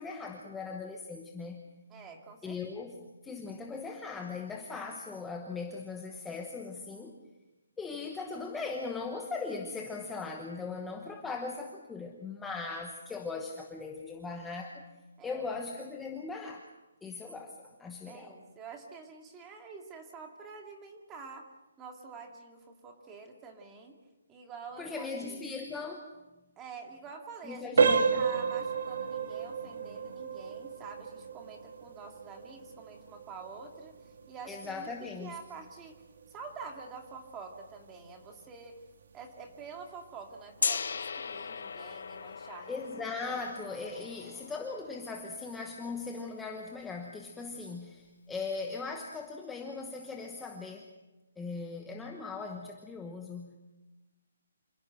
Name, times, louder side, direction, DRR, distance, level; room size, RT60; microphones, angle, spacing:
voice 1, 0.0-1.6 2.4-2.9 3.2-7.1 7.8-14.8 15.2-16.6 17.0-18.4 24.8-26.1 27.4-28.3 34.5-35.4 42.7-50.9 51.4-53.5, left 4 dB, 5° left, 1 dB, 1.1 m, -39 dB
voice 2, 1.9-2.6 3.0-3.1 15.2-15.4 18.1-21.5 21.8-24.0 24.3-25.4 26.6-34.0 34.3-36.0 36.3-38.8 39.1-42.7 43.3-43.4 43.9-44.5, right 5 dB, 10° right, 3 dB, 2.1 m, -47 dB
sound 1, 27.8-38.4 38.8-39.0 39.6-39.7 40.2-40.4, right 5 dB, 50° right, 1.8 m, -32 dB
Gong, 40.6-46.5, left 5 dB, 60° left, 0.9 m, -38 dB
27.0 x 16.5 x 7.9 m, 1.1 s
hypercardioid pair, 175°, 0 cm